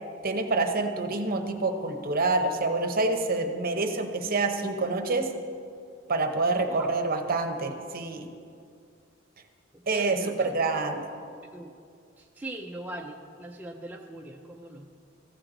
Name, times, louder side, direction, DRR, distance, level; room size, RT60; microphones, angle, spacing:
voice 1, 0.2-5.3 6.1-8.3 9.9-11.1, right 3 dB, 45° right, 6 dB, 0.8 m, -27 dB
voice 2, 9.9-10.5 11.5-11.7 12.2-14.9, right 1 dB, 10° right, 0 dB, 0.5 m, -40 dB
14.5 x 7.4 x 3.9 m, 2.4 s
head